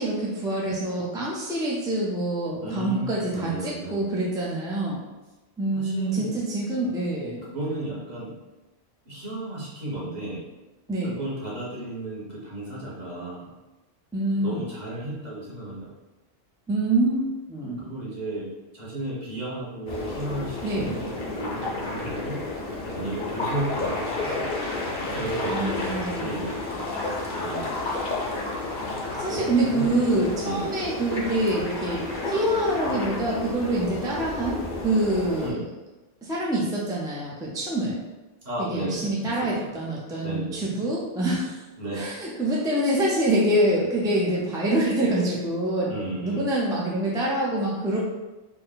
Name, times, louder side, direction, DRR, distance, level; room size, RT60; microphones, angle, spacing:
voice 1, 0.0-5.0 5.6-7.5 10.9-11.2 14.1-14.7 16.7-17.9 20.6-20.9 25.5-26.4 29.2-35.6 36.2-38.0 38.6-41.6 41.9-48.0, right 1 dB, 5° right, -5 dB, 0.5 m, -26 dB
voice 2, 2.6-4.1 5.7-6.3 7.5-8.3 9.0-10.4 11.1-13.5 14.4-15.9 17.8-18.4 18.7-22.4 22.9-24.5 25.0-26.5 27.4-27.9 28.3-28.4 29.3-30.2 30.4-30.6 35.4-35.7 38.4-39.7 40.2-40.9 41.8-42.0 45.9-46.5, right 1 dB, 45° right, -7 dB, 1.3 m, -34 dB
sound 1, 19.9-35.5, left 2 dB, 55° left, 0.9 m, -31 dB
4.2 x 2.2 x 3.9 m, 1.1 s
omnidirectional pair, 1.0 m